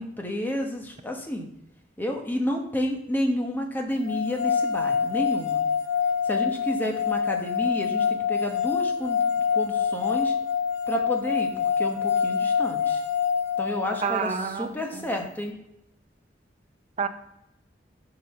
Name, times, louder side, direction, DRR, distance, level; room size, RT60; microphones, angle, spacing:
voice 1, 0.0-1.5 2.0-5.6 6.2-10.3 10.9-13.0 13.6-15.5, equal, 10° left, 2 dB, 1.0 m, -30 dB
sound 1, 4.1-14.2, left 7 dB, 65° left, 0.8 m, -26 dB
voice 2, 14.0-15.1 17.0-17.1, right 6 dB, 35° right, 8 dB, 0.6 m, -29 dB
7.3 x 3.9 x 5.7 m, 0.84 s
head